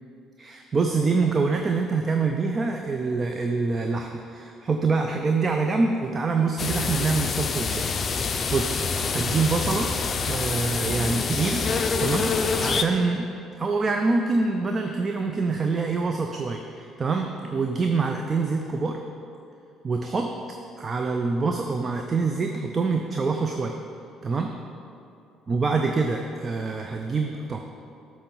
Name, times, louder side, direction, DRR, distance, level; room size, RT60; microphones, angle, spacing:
voice 1, 0.4-7.9 8.2-9.9 10.2-11.7 12.0-13.3 13.6-19.0 19.8-20.3 20.8-23.8 24.2-24.5 25.5-27.6, right 4 dB, 35° right, 3 dB, 0.4 m, -25 dB
sound 1, 6.6-12.8, left 5 dB, 40° left, 0.4 m, -26 dB
7.9 x 3.2 x 5.3 m, 2.6 s
hypercardioid pair, 55°, 0 cm